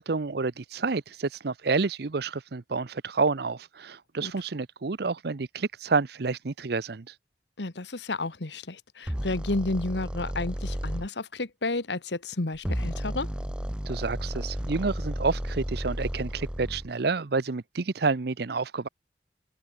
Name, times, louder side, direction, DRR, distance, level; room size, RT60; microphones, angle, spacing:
voice 1, 0.0-7.1 13.9-18.9, right 4 dB, 60° right, 0.7 m, -29 dB
voice 2, 7.6-13.3, left 2 dB, 75° left, 1.5 m, -31 dB
sound 1, 9.1-11.1 12.5-16.9, equal, 5° right, 0.8 m, -33 dB
open air
head